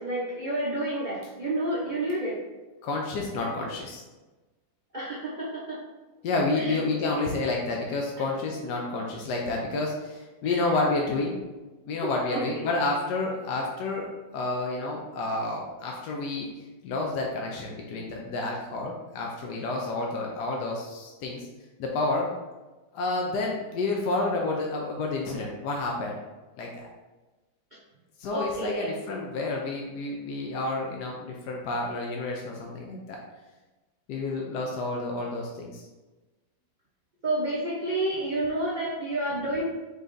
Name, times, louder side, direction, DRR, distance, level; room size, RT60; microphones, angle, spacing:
voice 1, 0.0-2.4 3.4-3.5 4.9-5.8 6.6-6.8 10.4-10.6 12.0-12.7 28.3-28.9 37.2-39.6, right 1 dB, 85° right, -6 dB, 0.4 m, -30 dB
voice 2, 2.8-4.0 6.2-11.4 11.9-14.1 14.3-16.5 16.8-21.5 21.8-22.3 22.9-26.2 26.6-26.9 28.2-33.2 34.1-35.8, left 2 dB, 70° left, -1 dB, 1.1 m, -30 dB
5.2 x 3.9 x 2.5 m, 1.2 s
omnidirectional pair, 2.1 m